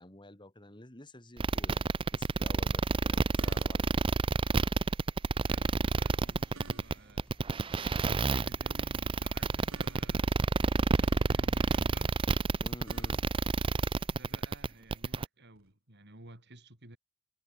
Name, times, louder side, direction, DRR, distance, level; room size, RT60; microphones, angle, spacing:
voice 1, 0.0-4.0 12.6-13.2, left 1 dB, 20° left, 2.5 m, -51 dB
sound 1, 1.4-15.3, right 3 dB, 25° right, 0.4 m, -29 dB
sound 2, 3.0-4.1 6.1-7.3 9.2-10.4 12.4-13.6 15.6-15.7, right 2 dB, 70° right, 2.8 m, -55 dB
voice 2, 5.5-10.4 10.7-12.2 14.1-17.0, right 2 dB, 50° right, 5.7 m, -53 dB
sound 3, 5.9-12.6, equal, 5° left, 4.7 m, -61 dB
head